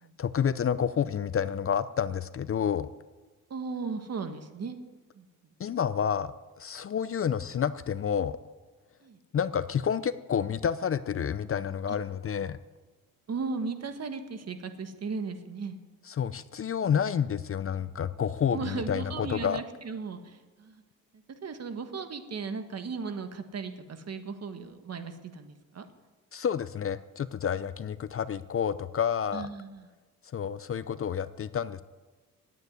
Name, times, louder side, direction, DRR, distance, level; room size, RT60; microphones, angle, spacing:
voice 1, 0.2-2.9 5.6-8.4 9.3-12.6 16.1-19.6 26.3-29.5 30.3-31.8, left 8 dB, 40° left, 15 dB, 0.5 m, -29 dB
voice 2, 3.5-4.8 5.1-5.2 9.0-9.2 11.9-12.0 13.3-15.8 18.5-20.8 21.4-25.9 29.3-29.9, right 4 dB, 45° right, 8 dB, 1.6 m, -36 dB
12.0 x 9.3 x 9.6 m, 1.3 s
cardioid pair, 100°, 36 cm